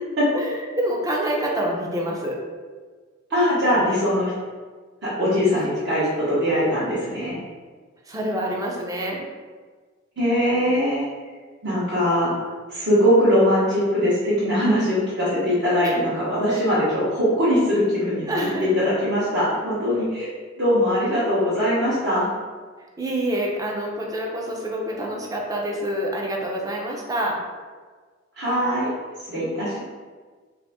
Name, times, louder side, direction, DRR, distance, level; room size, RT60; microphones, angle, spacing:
voice 1, 0.3-2.4 5.5-5.7 8.1-9.2 15.8-15.9 16.5-16.7 18.3-18.7 23.0-27.4, right 1 dB, 20° right, -1 dB, 0.5 m, -27 dB
voice 2, 3.3-4.3 5.0-7.4 10.2-11.1 11.6-12.3 12.7-18.3 18.6-22.3 28.4-28.9 29.3-29.8, equal, 60° right, -11 dB, 1.0 m, -21 dB
2.7 x 2.5 x 3.4 m, 1.5 s
head